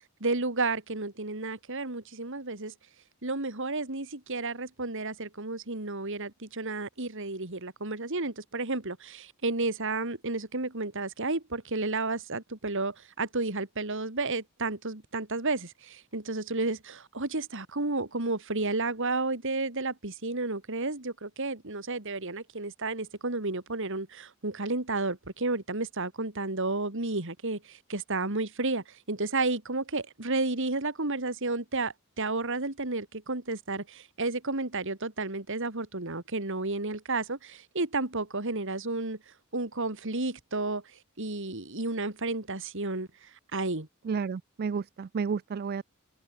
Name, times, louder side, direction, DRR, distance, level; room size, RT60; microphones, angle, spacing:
voice 1, 0.2-2.7 3.2-39.2 39.5-40.8 41.2-43.9, right 3 dB, 65° right, 2.9 m, -32 dB
voice 2, 44.0-45.8, right 5 dB, 45° right, 0.4 m, -31 dB
open air
head